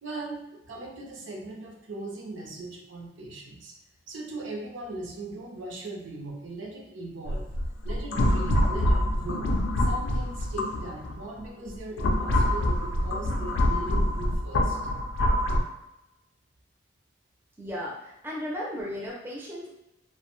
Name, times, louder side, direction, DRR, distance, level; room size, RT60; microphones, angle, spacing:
voice 1, 0.0-3.7 4.1-7.5 7.8-9.5 9.8-14.8, right 2 dB, 75° right, 0 dB, 0.5 m, -39 dB
sound 1, 7.3-11.1 11.7-15.6, left 1 dB, 70° left, 0.4 m, -25 dB
voice 2, 17.6-19.7, equal, 10° right, -5 dB, 0.4 m, -35 dB
2.5 x 2.0 x 3.0 m, 0.92 s
head